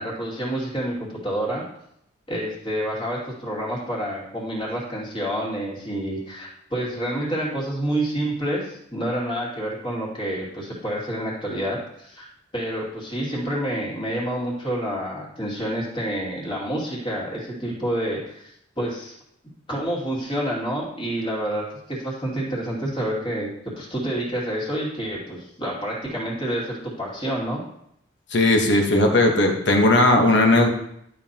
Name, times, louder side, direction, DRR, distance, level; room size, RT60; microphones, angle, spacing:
voice 1, 0.0-1.6 2.3-12.3 12.5-19.1 19.7-23.5 23.8-27.6, right 1 dB, 25° left, -5 dB, 2.5 m, -28 dB
voice 2, 28.3-30.7, left 2 dB, 60° left, 3 dB, 1.2 m, -17 dB
12.0 x 5.4 x 2.9 m, 0.75 s
head